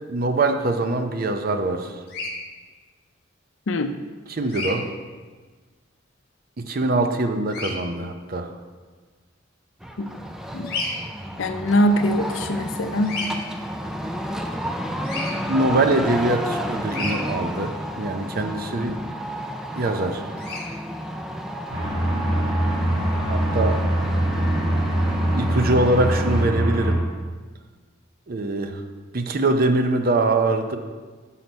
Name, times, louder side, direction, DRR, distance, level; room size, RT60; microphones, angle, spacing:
voice 1, 0.1-1.9 4.3-4.9 6.6-8.5 15.5-19.0 19.8-20.2 23.3-23.8 25.3-27.0 28.3-28.8 29.1-30.8, right 2 dB, 45° right, 6 dB, 0.6 m, -23 dB
Bird vocalization bird call bird song, 2.1-2.3 4.5-4.7 7.5-7.7 10.6-11.0 13.0-13.3 15.0-15.3 16.9-17.2 20.4-20.7, left 2 dB, 50° left, 1.2 m, -30 dB
sound 1, 9.8-26.5, equal, ahead, 0.3 m, -31 dB
voice 2, 11.4-13.1, equal, 65° left, 8 dB, 0.5 m, -22 dB
sound 2, 21.7-26.9, right 1 dB, 65° right, 1.9 m, -23 dB
6.1 x 5.7 x 5.2 m, 1.4 s
head